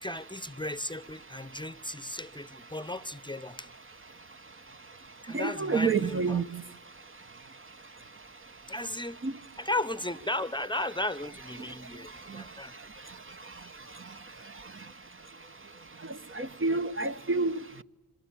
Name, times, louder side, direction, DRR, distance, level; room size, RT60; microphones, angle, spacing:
voice 1, 0.0-3.7 5.2-6.4 8.7-9.2 9.6-12.7, left 1 dB, 15° left, 0.8 m, -35 dB
voice 2, 5.3-6.4 9.2-9.3 16.4-17.5, right 4 dB, 35° right, 0.8 m, -28 dB
26.0 x 23.0 x 8.5 m
cardioid pair, 40°, 35 cm